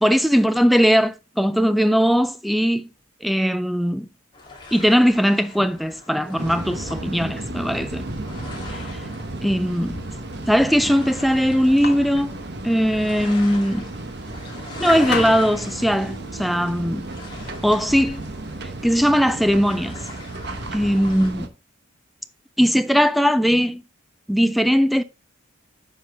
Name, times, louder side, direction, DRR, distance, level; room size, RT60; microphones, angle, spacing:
voice 1, 0.0-2.9 3.2-4.1 4.7-8.1 8.7-9.0 9.4-10.0 10.5-13.9 14.8-17.1 17.6-18.3 18.8-20.1 20.7-21.5 22.6-23.8 24.3-25.0, equal, ahead, 0.4 m, -19 dB
sound 1, 4.3-21.3, left 2 dB, 20° left, 2.4 m, -41 dB
sound 2, 6.4-21.5, right 2 dB, 50° right, 1.0 m, -34 dB
sound 3, 9.8-19.6, left 4 dB, 50° left, 1.5 m, -35 dB
9.3 x 5.6 x 3.4 m
head